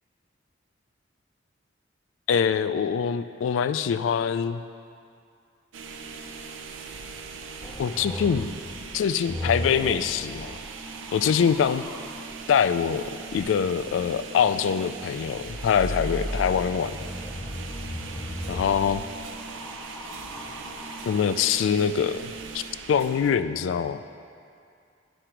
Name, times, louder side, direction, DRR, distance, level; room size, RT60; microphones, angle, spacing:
voice 1, 2.3-4.6 7.8-8.6 8.9-10.6 11.1-11.8 12.5-17.0 18.5-19.0 21.0-22.6 22.9-24.0, left 7 dB, 85° left, 12 dB, 0.3 m, -24 dB
sound 1, 5.7-23.3, right 5 dB, 80° right, 0.5 m, -40 dB
sound 2, 7.6-12.2 15.2-21.3 22.3-22.9, left 1 dB, 10° left, 0.5 m, -36 dB
9.9 x 5.0 x 4.4 m, 2.4 s
head